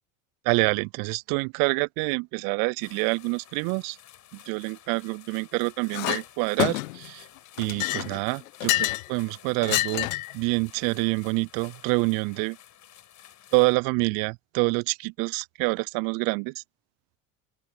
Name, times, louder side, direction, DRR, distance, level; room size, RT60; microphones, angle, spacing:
voice 1, 0.5-4.0 4.5-7.2 7.6-10.1 10.3-12.6 13.5-16.6, right 32 dB, 55° right, 0.5 m, -27 dB
sound 1, 2.8-13.7, left 11 dB, 45° left, 5.7 m, -52 dB
Chink clink, 5.9-6.2 6.6-7.1 7.6-9.1 9.6-10.3, left 19 dB, 75° left, 1.1 m, -27 dB
open air
hypercardioid pair, 80°, 41 cm